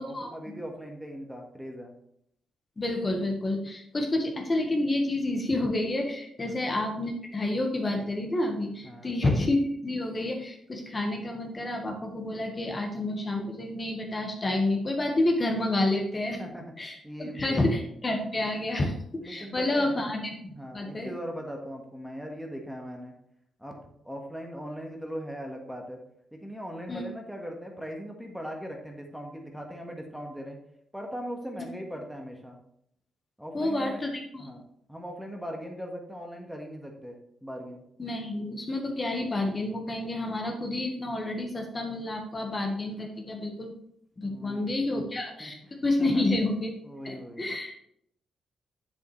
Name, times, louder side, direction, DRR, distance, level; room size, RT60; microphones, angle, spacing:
voice 1, 0.0-1.9 6.4-6.6 8.8-9.1 16.4-16.6 17.0-17.7 19.2-20.0 20.5-23.1 23.6-23.8 24.0-26.0 26.3-30.6 30.9-32.6 33.4-34.0 34.4-34.6 34.9-37.8 44.3-45.5 46.0-46.3 46.8-47.5, equal, 5° right, 2 dB, 1.5 m, -39 dB
voice 2, 2.8-16.4 16.8-20.2 20.7-21.1 26.9-27.0 33.5-34.5 38.0-43.7 44.2-46.7 47.0-47.7, left 2 dB, 30° left, 2 dB, 1.4 m, -29 dB
7.6 x 7.1 x 3.2 m, 0.73 s
cardioid pair, 80°, 0 cm